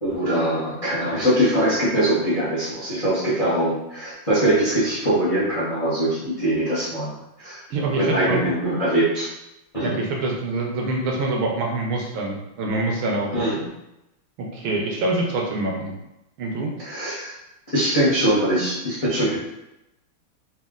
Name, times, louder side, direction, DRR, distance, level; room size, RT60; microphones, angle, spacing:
voice 1, 0.0-7.6 8.0-9.3 9.7-9.9 13.3-13.7 16.8-17.4 17.7-19.4, right 1 dB, 35° left, -8 dB, 0.5 m, -22 dB
voice 2, 7.7-8.4 9.8-13.3 14.4-15.9 16.4-16.7, right 2 dB, 75° right, 0 dB, 1.5 m, -25 dB
4.2 x 2.5 x 3.7 m, 0.91 s
omnidirectional pair, 2.4 m